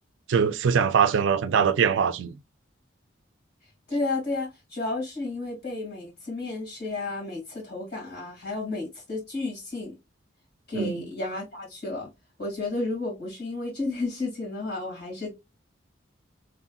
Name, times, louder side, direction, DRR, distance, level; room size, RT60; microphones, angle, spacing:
voice 1, 0.3-2.4 10.7-11.1, right 7 dB, 65° right, 0.3 m, -22 dB
voice 2, 3.9-10.0 10.7-12.1 12.4-15.3, left 2 dB, 55° left, 2.1 m, -32 dB
3.1 x 2.6 x 2.2 m
head